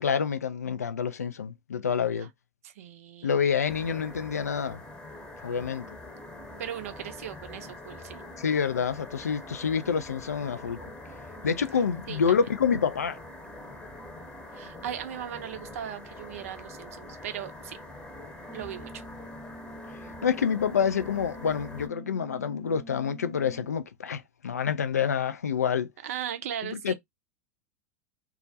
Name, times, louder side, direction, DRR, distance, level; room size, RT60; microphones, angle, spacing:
voice 1, 0.0-2.3 3.2-4.8 5.4-5.9 8.4-10.8 11.4-13.2 20.2-25.9 26.6-26.9, left 7 dB, 80° left, 0.3 m, -27 dB
voice 2, 2.6-3.4 6.6-8.2 12.1-12.4 14.5-17.8 18.4-19.0 26.0-26.9, right 10 dB, 65° right, 0.5 m, -38 dB
sound 1, 3.6-21.9, left 1 dB, 10° left, 0.8 m, -44 dB
sound 2, 18.5-23.7, equal, 10° right, 0.5 m, -47 dB
2.3 x 2.1 x 2.6 m
figure-of-eight pair, 85°, 8 cm